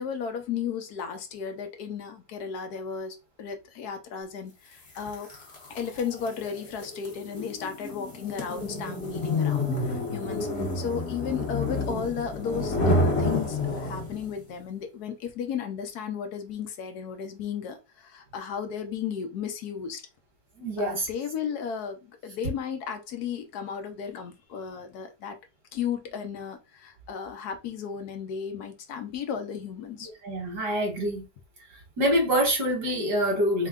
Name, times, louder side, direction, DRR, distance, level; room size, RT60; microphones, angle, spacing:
voice 1, 0.0-5.3 5.7-20.0 20.8-25.4 25.7-30.1, left 7 dB, 70° left, 1.2 m, -34 dB
sound 1, 4.9-14.3, left 2 dB, 45° left, 1.4 m, -29 dB
voice 2, 20.6-21.1 30.2-31.3 32.0-33.7, equal, 75° right, 2.3 m, -25 dB
4.5 x 2.2 x 3.7 m
omnidirectional pair, 1.8 m